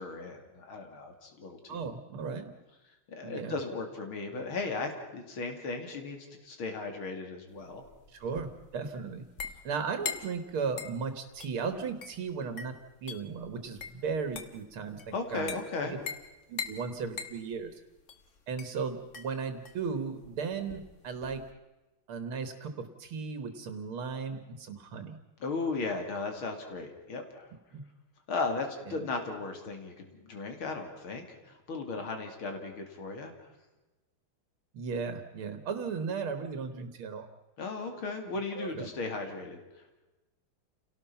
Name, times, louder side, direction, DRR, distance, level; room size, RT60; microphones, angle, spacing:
voice 1, 0.0-1.8 3.1-7.8 15.1-15.9 25.4-27.5 28.3-33.3 37.6-39.6, left 3 dB, 85° left, 5 dB, 3.4 m, -36 dB
voice 2, 1.7-2.5 3.2-3.6 8.1-9.2 9.6-15.6 15.8-16.0 16.5-17.7 18.5-21.4 22.1-25.2 27.7-27.8 28.9-29.1 34.7-37.3 38.6-38.9, right 5 dB, 85° right, 9 dB, 2.3 m, -36 dB
sound 1, 7.6-21.5, left 6 dB, 40° left, 1.6 m, -43 dB
28.5 x 18.0 x 5.8 m, 1.1 s
omnidirectional pair, 2.3 m